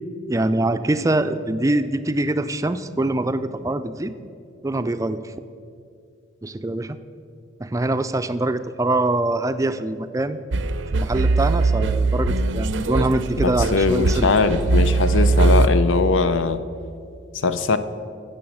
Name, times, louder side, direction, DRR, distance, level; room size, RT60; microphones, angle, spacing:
voice 1, 0.3-4.1 4.6-5.4 6.4-7.0 7.6-10.4 10.9-14.3, right 2 dB, 15° right, 11 dB, 0.4 m, -24 dB
sound 1, 10.5-15.7, right 3 dB, 75° right, 0.6 m, -20 dB
voice 2, 13.4-16.6 17.4-17.8, left 4 dB, 85° left, 12 dB, 0.7 m, -20 dB
16.0 x 7.1 x 6.3 m, 2.4 s
head